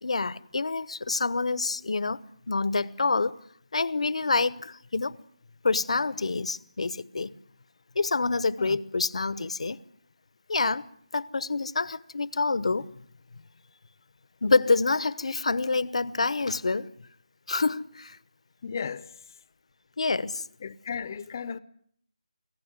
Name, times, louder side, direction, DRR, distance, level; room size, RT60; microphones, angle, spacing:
voice 1, 0.0-3.4 3.7-5.2 5.6-7.3 7.9-9.8 10.5-10.8 11.1-12.9 14.4-16.9 17.5-18.2 20.0-20.4, left 3 dB, 60° left, 1.0 m, -27 dB
voice 2, 18.6-19.1 20.6-21.6, left 6 dB, 30° left, 0.9 m, -35 dB
24.5 x 16.5 x 9.5 m
figure-of-eight pair, 170°, 4 cm